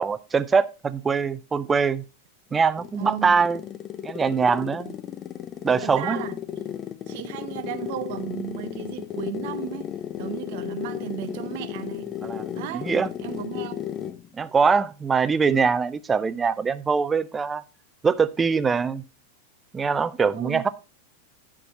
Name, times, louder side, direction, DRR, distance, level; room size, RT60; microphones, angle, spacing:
voice 1, 0.0-2.0 2.5-3.6 4.0-4.9 5.6-6.2 12.2-12.5 12.7-13.1 14.3-17.6 18.0-19.0 19.7-20.7, right 5 dB, 15° right, 0.5 m, -23 dB
sound 1, 2.5-14.3, left 10 dB, 30° left, 0.5 m, -34 dB
voice 2, 3.0-3.4 5.8-6.4 7.1-12.2 12.5-12.9 13.2-13.9 20.3-20.6, right 13 dB, 50° right, 0.8 m, -35 dB
9.6 x 6.1 x 4.2 m
figure-of-eight pair, 90°, 0 cm